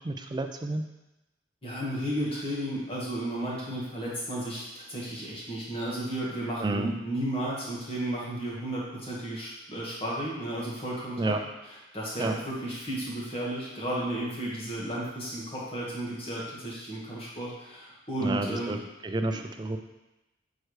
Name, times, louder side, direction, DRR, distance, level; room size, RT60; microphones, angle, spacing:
voice 1, 0.0-0.8 6.6-6.9 11.2-11.4 12.2-12.3 18.2-18.8 19.0-19.8, right 2 dB, 20° right, 6 dB, 0.3 m, -30 dB
voice 2, 1.6-11.3 11.6-18.8 19.3-19.4, right 1 dB, 30° left, -6 dB, 1.5 m, -33 dB
6.5 x 4.6 x 3.2 m, 0.99 s
head